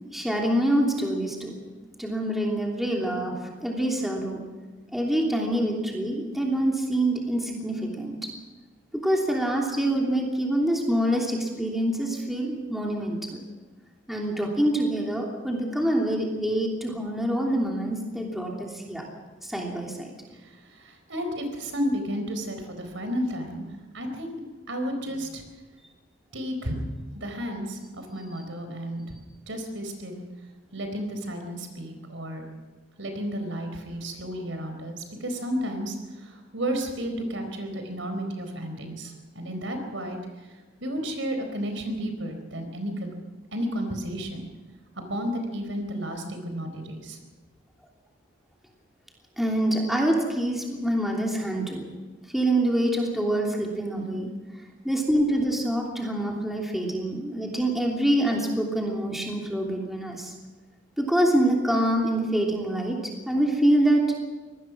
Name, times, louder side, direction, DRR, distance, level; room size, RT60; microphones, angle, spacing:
voice 1, 0.1-1.5 2.0-3.3 3.6-4.4 4.9-8.2 8.9-13.4 14.1-19.0 19.4-20.1 49.4-51.8 52.3-54.3 54.8-60.3 61.0-64.0, right 1 dB, ahead, -1 dB, 3.0 m, -25 dB
voice 2, 20.3-23.7 23.9-24.4 24.7-25.4 26.3-26.8 27.2-29.2 29.5-30.3 30.7-32.5 33.0-40.2 40.8-43.1 43.5-44.5 45.0-47.2 53.9-54.3, equal, 75° right, 6 dB, 4.4 m, -32 dB
23.5 x 19.0 x 6.2 m, 1.3 s
head